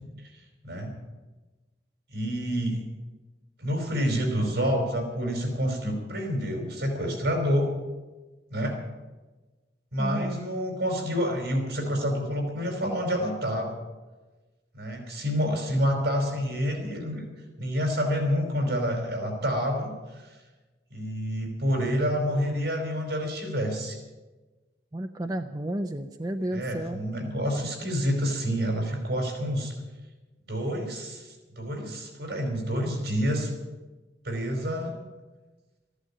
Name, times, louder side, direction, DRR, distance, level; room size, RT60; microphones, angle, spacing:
voice 1, 0.6-0.9 2.1-2.9 3.6-7.7 8.5-8.8 9.9-13.8 14.7-17.3 17.6-20.4 20.9-24.0 26.4-29.7 30.5-33.5 34.2-35.0, equal, 75° right, 2 dB, 5.0 m, -28 dB
voice 2, 10.0-10.4 24.9-27.0, right 1 dB, 20° right, 6 dB, 0.6 m, -32 dB
14.5 x 11.0 x 8.8 m, 1.2 s
head